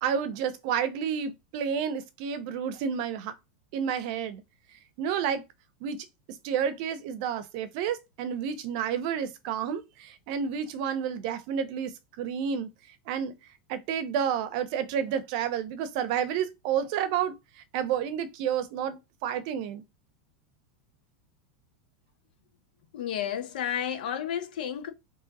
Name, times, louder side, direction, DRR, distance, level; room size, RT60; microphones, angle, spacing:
voice 1, 0.0-3.3 3.7-4.4 5.0-5.4 5.8-6.0 6.4-12.7 13.1-13.3 13.7-17.3 17.7-19.8, right 8 dB, 50° right, 0.7 m, -30 dB
voice 2, 22.9-24.9, left 9 dB, 80° left, 1.1 m, -31 dB
3.7 x 3.0 x 4.0 m
supercardioid pair, 160°, 5 cm